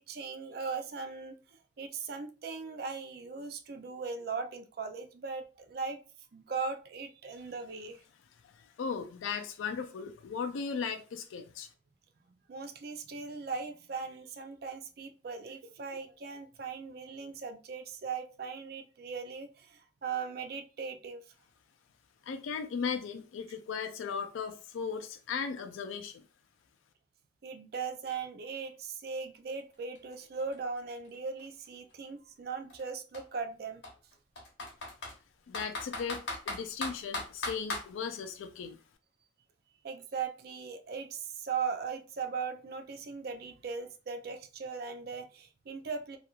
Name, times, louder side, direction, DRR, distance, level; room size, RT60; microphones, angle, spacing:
voice 1, 0.0-6.0 6.3-8.0 12.5-21.3 27.4-33.8 39.8-46.2, right 5 dB, 50° right, 6 dB, 0.4 m, -39 dB
voice 2, 8.4-11.7 22.2-26.2 35.5-36.2 36.5-38.8, left 6 dB, 85° left, 6 dB, 0.4 m, -37 dB
Computer keyboard, 29.6-29.7 30.0-31.9 32.7-32.8 33.1-33.2 33.8-35.2 35.5-37.9, left 2 dB, 65° left, 1.0 m, -38 dB
2.9 x 2.3 x 2.4 m, 0.34 s
head